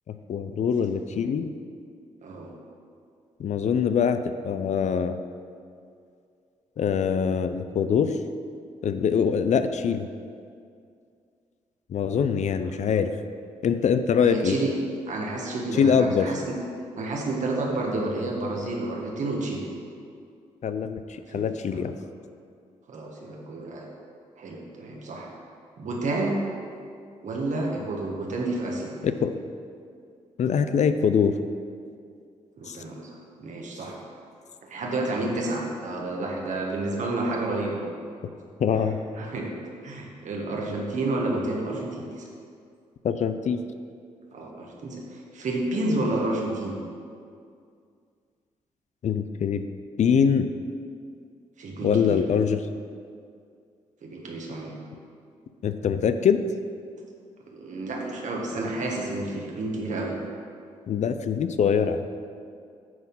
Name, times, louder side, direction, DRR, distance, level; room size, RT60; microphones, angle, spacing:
voice 1, 0.1-1.5 3.4-5.2 6.8-8.2 8.8-10.1 11.9-13.1 13.6-14.6 15.8-16.3 20.6-22.0 29.0-29.4 30.4-31.4 32.7-32.8 38.6-39.0 43.0-43.6 49.0-49.7 50.0-50.5 51.8-52.6 55.6-56.4 60.9-62.1, left 7 dB, 60° left, 10 dB, 0.5 m, -23 dB
voice 2, 14.2-14.7 15.1-16.5 16.9-19.7 21.3-21.4 22.9-23.9 24.4-25.3 25.8-26.4 27.2-28.9 32.6-34.0 34.7-37.8 38.7-38.9 39.2-39.5 39.8-42.2 44.3-46.8 51.6-52.2 54.0-54.8 57.5-60.2, right 2 dB, 65° right, -1 dB, 1.6 m, -30 dB
9.3 x 4.3 x 5.6 m, 2.3 s
supercardioid pair, 55°, 14 cm